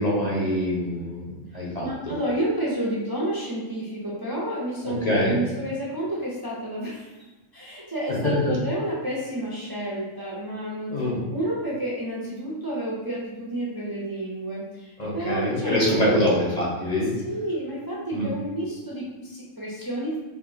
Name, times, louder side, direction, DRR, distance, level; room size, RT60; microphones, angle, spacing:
voice 1, 0.0-1.9 4.8-5.4 8.1-8.5 10.9-11.2 15.0-17.1 18.1-18.3, left 1 dB, 40° left, -6 dB, 0.7 m, -24 dB
voice 2, 1.8-7.1 7.5-16.2 17.2-20.2, right 1 dB, 30° right, -7 dB, 0.4 m, -30 dB
3.6 x 2.6 x 3.7 m, 1.1 s
omnidirectional pair, 1.4 m